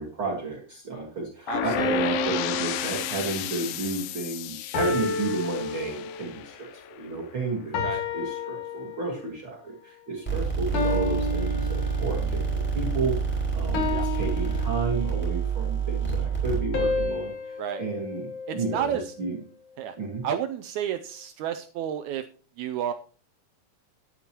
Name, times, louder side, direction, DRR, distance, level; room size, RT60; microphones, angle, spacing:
voice 1, 0.0-7.8 8.1-18.9 19.2-19.4 20.0-20.2, right 3 dB, 45° right, -2 dB, 2.2 m, -32 dB
sound 1, 1.5-7.3, left 12 dB, 80° left, 2.3 m, -33 dB
voice 2, 1.5-2.1 7.8-8.0 13.9-14.1 17.6-17.8 18.5-19.1 19.8-20.0 20.2-22.2 22.6-22.9, right 9 dB, 85° right, 9 dB, 1.6 m, -31 dB
sound 2, 1.8-3.7 4.7-6.4 7.7-9.3 10.7-12.4 13.7-15.4 16.7-19.1, left 3 dB, 65° left, 3.2 m, -31 dB
sound 3, 10.3-17.1, right 6 dB, 5° left, 4.6 m, -27 dB
13.0 x 10.5 x 2.9 m, 0.41 s
omnidirectional pair, 4.0 m